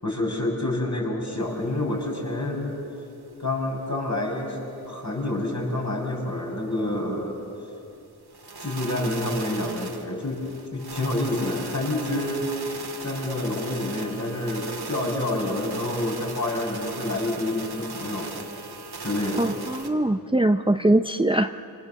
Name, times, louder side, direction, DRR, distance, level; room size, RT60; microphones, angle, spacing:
voice 1, 0.0-2.7 3.4-4.6 4.9-7.3 8.6-10.4 10.7-12.5 13.0-18.3 19.0-19.5, left 1 dB, 45° left, -1 dB, 6.8 m, -28 dB
sound 1, 1.4-1.5 1.8-1.9 2.3-2.4 2.8-2.9 3.3-3.9 4.3-4.4 4.9-5.0 5.4-5.5 5.9-6.0 6.4-6.5 6.9-7.0 7.4-7.5 7.9-8.0 8.3-19.9, right 4 dB, 80° right, 2.1 m, -38 dB
voice 2, 19.4-21.6, right 1 dB, 15° right, 8 dB, 0.7 m, -22 dB
27.0 x 26.0 x 7.2 m, 2.7 s
wide cardioid pair, 50°, 38 cm